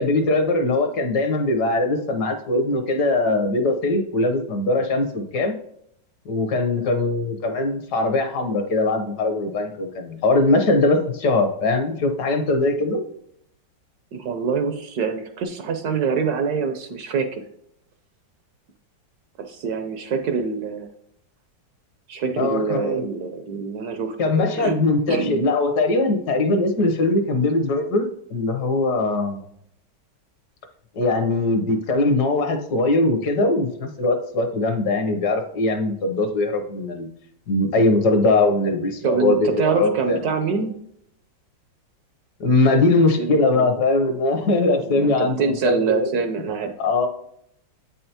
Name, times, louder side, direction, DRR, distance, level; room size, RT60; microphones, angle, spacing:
voice 1, 0.0-5.5 6.2-13.0 22.4-23.1 24.2-28.0 28.3-29.4 30.9-37.1 37.5-40.2 42.4-46.1 46.8-47.1, left 2 dB, 65° left, 6 dB, 1.4 m, -21 dB
voice 2, 14.1-17.4 19.4-20.9 22.1-24.2 24.6-24.8 25.1-25.4 39.0-40.7 43.2-43.7 44.8-46.7, right 5 dB, 70° right, 7 dB, 1.1 m, -25 dB
8.3 x 5.6 x 2.8 m, 0.72 s
omnidirectional pair, 2.0 m